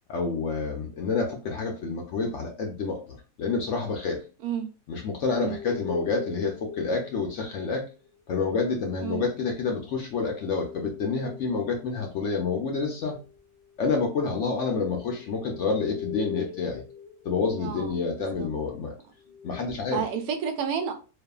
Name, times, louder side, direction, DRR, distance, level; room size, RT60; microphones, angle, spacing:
voice 1, 0.1-4.2 4.9-7.8 8.3-13.2 13.8-16.8 17.2-18.9 19.4-20.0, left 4 dB, 65° left, 0.7 m, -28 dB
sound 1, 5.3-8.1 10.2-17.9 19.2-19.7, left 7 dB, 40° left, 0.4 m, -42 dB
voice 2, 17.6-18.5 19.9-20.9, right 7 dB, 80° right, 1.1 m, -31 dB
2.6 x 2.3 x 2.2 m
omnidirectional pair, 1.6 m